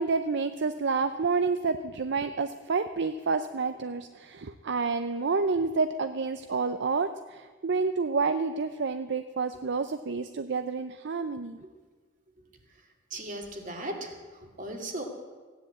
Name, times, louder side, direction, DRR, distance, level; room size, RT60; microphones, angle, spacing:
voice 1, 0.0-11.6, right 4 dB, 65° right, 10 dB, 0.6 m, -29 dB
voice 2, 13.1-15.0, right 1 dB, 45° right, 2 dB, 2.4 m, -37 dB
16.0 x 10.0 x 8.5 m, 1.4 s
head